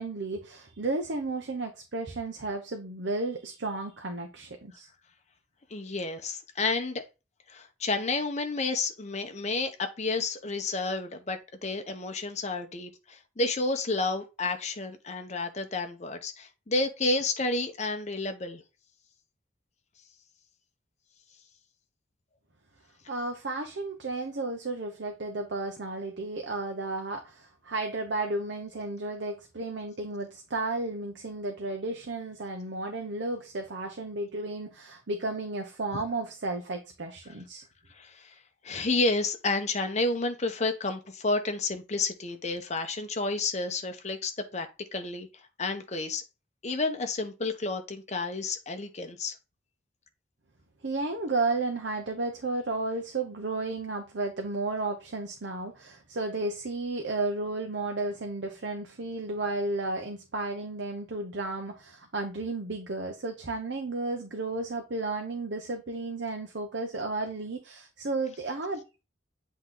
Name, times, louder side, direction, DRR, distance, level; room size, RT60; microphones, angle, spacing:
voice 1, 0.0-4.9 23.1-37.6 50.8-69.0, right 2 dB, 65° right, 0.8 m, -33 dB
voice 2, 5.7-7.0 7.5-18.6 37.9-38.3 38.6-45.3 45.6-46.2 46.6-49.3, left 3 dB, 35° left, 0.8 m, -30 dB
7.9 x 3.1 x 3.8 m
head